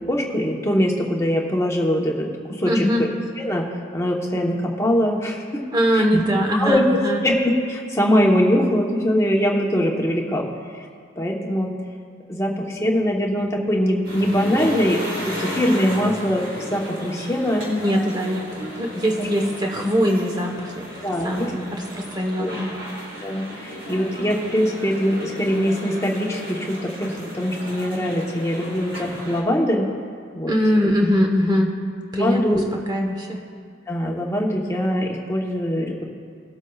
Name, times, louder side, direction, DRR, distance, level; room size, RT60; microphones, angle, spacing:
voice 1, 0.0-3.1 3.4-5.6 5.9-6.2 6.6-6.8 7.2-7.4 7.7-10.5 11.2-11.7 12.3-15.0 15.2-17.6 19.2-19.3 21.0-21.5 22.4-22.6 23.2-29.9 30.3-30.5 30.8-30.9 32.2-32.6 33.9-36.0, equal, 15° left, -1 dB, 1.0 m, -22 dB
voice 2, 2.6-3.0 5.7-7.2 17.7-20.9 21.2-22.7 30.5-31.7 32.1-32.6 32.9-33.4, equal, 20° right, 1 dB, 1.0 m, -22 dB
sound 1, 14.0-29.4, equal, 90° right, 2.8 m, -34 dB
19.5 x 8.1 x 2.4 m, 2.2 s
head